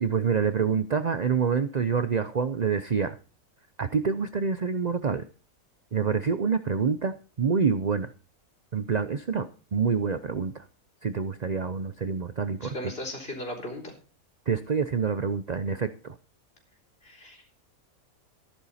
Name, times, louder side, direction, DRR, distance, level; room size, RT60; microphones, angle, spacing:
voice 1, 0.0-3.2 3.8-5.2 5.9-8.1 8.7-10.6 11.0-12.7 14.5-16.1, right 6 dB, 40° right, 11 dB, 0.6 m, -27 dB
voice 2, 12.6-13.9 17.0-17.4, left 1 dB, 40° left, 1 dB, 4.0 m, -37 dB
13.5 x 11.0 x 4.2 m, 0.35 s
omnidirectional pair, 1.5 m